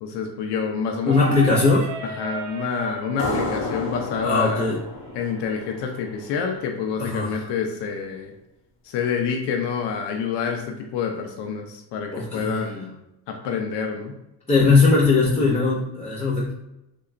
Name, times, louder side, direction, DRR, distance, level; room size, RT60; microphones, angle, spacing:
voice 1, 0.0-1.4 2.2-4.7 5.2-8.3 8.8-13.0 13.3-14.1, left 6 dB, 85° left, 3 dB, 0.5 m, -27 dB
sound 1, 1.0-6.6, right 3 dB, 65° right, 0.6 m, -37 dB
voice 2, 1.1-1.9 4.2-4.8 7.0-7.5 12.1-12.6 14.5-16.5, left 3 dB, 15° left, -4 dB, 0.4 m, -19 dB
sound 2, 3.2-6.5, left 2 dB, 55° left, 0.9 m, -31 dB
2.8 x 2.2 x 2.4 m, 0.90 s
cardioid pair, 105°, 40 cm